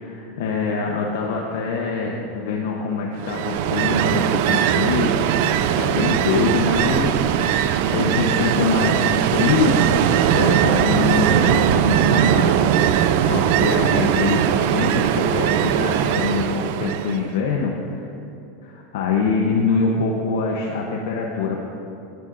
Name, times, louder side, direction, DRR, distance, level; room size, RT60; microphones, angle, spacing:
voice 1, 0.0-9.8 10.3-12.6 13.3-17.7 18.6-21.6, left 4 dB, 85° left, -1 dB, 0.9 m, -24 dB
Ocean, 3.2-17.3, right 10 dB, 65° right, 0.4 m, -20 dB
12.5 x 10.5 x 2.6 m, 2.8 s
supercardioid pair, 150°, 0 cm